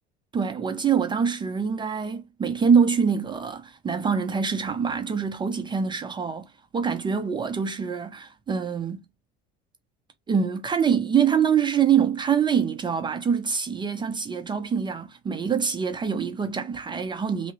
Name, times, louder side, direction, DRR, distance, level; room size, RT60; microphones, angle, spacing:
voice 1, 0.3-9.0 10.3-17.5, right 7 dB, 20° right, 0.5 m, -25 dB
3.3 x 2.0 x 3.0 m
supercardioid pair, 110°, 21 cm